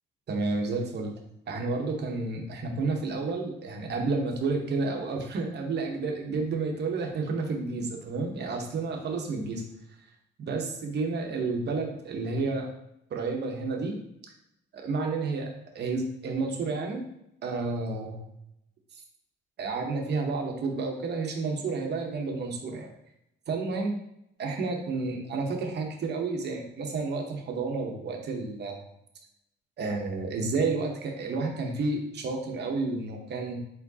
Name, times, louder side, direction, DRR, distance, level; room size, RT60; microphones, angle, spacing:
voice 1, 0.3-1.1 1.5-9.6 10.4-12.7 13.1-14.0 14.7-17.0 17.4-18.2 19.6-22.9 23.5-23.9 24.4-28.8 29.8-33.6, right 3 dB, 60° right, 2 dB, 1.0 m, -30 dB
4.5 x 3.7 x 2.8 m, 0.79 s
cardioid pair, 90°, 20 cm